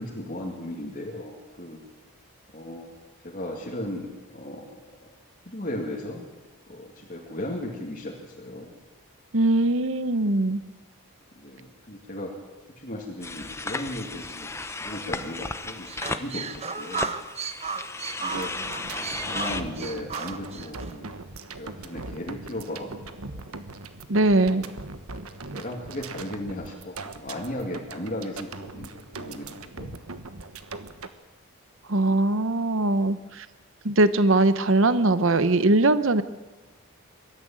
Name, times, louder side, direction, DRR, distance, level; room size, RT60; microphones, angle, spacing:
voice 1, 0.0-1.8 2.5-2.9 3.2-4.8 5.5-6.2 6.7-8.8 11.4-12.3 12.8-14.5 14.8-17.1 18.2-18.5 19.2-21.2 21.6-22.9 23.3-23.5 24.4-24.7 25.5-30.0, left 1 dB, 40° left, -2 dB, 2.4 m, -36 dB
voice 2, 9.3-10.6 24.1-24.6 31.9-33.5 33.8-36.2, right 2 dB, 60° right, 13 dB, 0.9 m, -21 dB
sound 1, 13.2-19.6, left 3 dB, 10° left, 0.7 m, -34 dB
sound 2, 15.9-20.9, right 5 dB, 30° right, 1.0 m, -34 dB
sound 3, 18.3-31.1, right 3 dB, 80° right, 1.3 m, -40 dB
23.0 x 13.0 x 8.9 m, 1.2 s
head